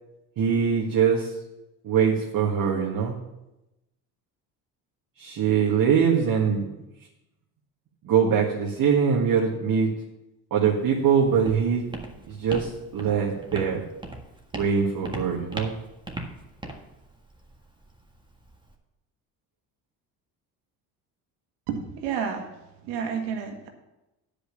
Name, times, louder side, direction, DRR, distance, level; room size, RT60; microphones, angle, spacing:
voice 1, 0.4-1.3 1.8-3.1 5.2-6.7 8.0-9.9 10.5-11.9 12.3-13.8 14.5-15.7, right 6 dB, 55° right, -2 dB, 1.8 m, -23 dB
Walk footsteps, 10.8-18.7, right 1 dB, 10° right, 1.6 m, -40 dB
voice 2, 21.7-22.5 22.8-23.7, right 7 dB, 80° right, 4 dB, 1.8 m, -30 dB
9.9 x 5.2 x 7.1 m, 0.95 s
supercardioid pair, 75°, 42 cm